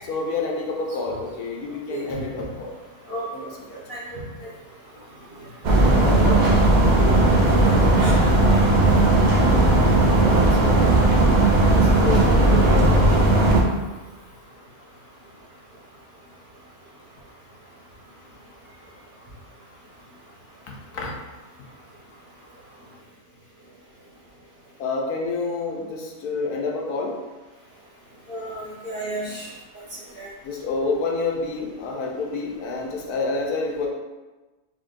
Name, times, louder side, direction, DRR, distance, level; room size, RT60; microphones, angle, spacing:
voice 1, 0.0-2.7 3.1-3.6 5.8-6.5 11.6-13.0 18.1-18.3 18.7-18.8 20.7-21.2 21.6-21.7 24.8-27.2 30.4-33.9, left 3 dB, 85° left, -1 dB, 1.2 m, -28 dB
sound 1, 5.6-13.6, right 2 dB, 80° right, 0.4 m, -17 dB
voice 2, 28.3-29.5 30.2-30.3, right 1 dB, 35° right, -9 dB, 1.2 m, -32 dB
3.8 x 3.6 x 2.5 m, 1.2 s
omnidirectional pair, 1.6 m